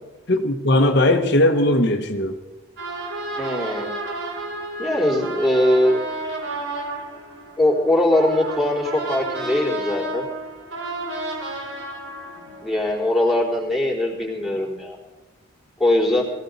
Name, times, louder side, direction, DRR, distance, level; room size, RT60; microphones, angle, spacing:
voice 1, 0.3-2.4, left 1 dB, 55° left, 4 dB, 1.1 m, -18 dB
sound 1, 2.8-13.3, right 2 dB, 70° right, 3.6 m, -32 dB
voice 2, 3.4-3.9 4.8-6.0 7.6-10.3 12.4-15.0 15.8-16.2, left 1 dB, ahead, -3 dB, 4.1 m, -21 dB
22.0 x 16.0 x 4.1 m, 1.1 s
head